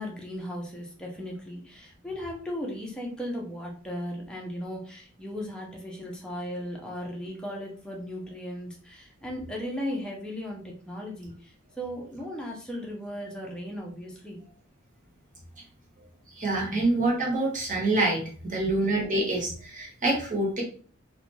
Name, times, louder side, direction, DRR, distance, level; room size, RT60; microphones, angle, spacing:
voice 1, 0.0-14.4 16.7-16.8 18.5-18.8, equal, 5° left, -2 dB, 0.5 m, -36 dB
voice 2, 16.4-20.6, right 2 dB, 40° right, -1 dB, 0.9 m, -26 dB
2.4 x 2.1 x 3.0 m, 0.44 s
head